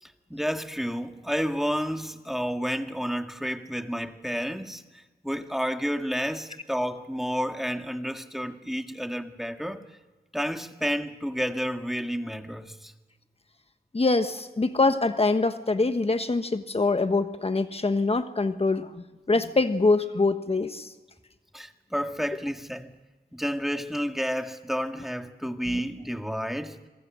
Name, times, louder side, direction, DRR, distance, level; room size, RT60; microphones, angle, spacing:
voice 1, 0.0-9.8 10.3-12.9 21.5-22.9 23.3-26.8, equal, ahead, 1.9 m, -30 dB
voice 2, 13.9-18.9 19.3-20.9, left 3 dB, 40° left, 1.3 m, -24 dB
26.0 x 23.5 x 6.3 m
cardioid pair, 50°, 16 cm